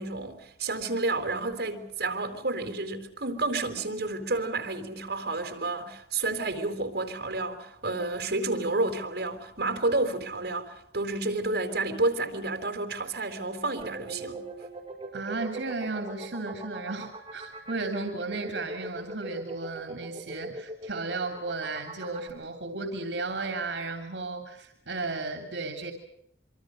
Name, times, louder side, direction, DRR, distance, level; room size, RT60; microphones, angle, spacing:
voice 1, 0.0-14.4, right 2 dB, 65° right, 4.1 m, -30 dB
sound 1, 13.8-22.3, right 2 dB, 25° right, 5.9 m, -41 dB
voice 2, 15.1-25.9, right 3 dB, 80° right, 3.2 m, -34 dB
26.5 x 24.5 x 6.5 m
head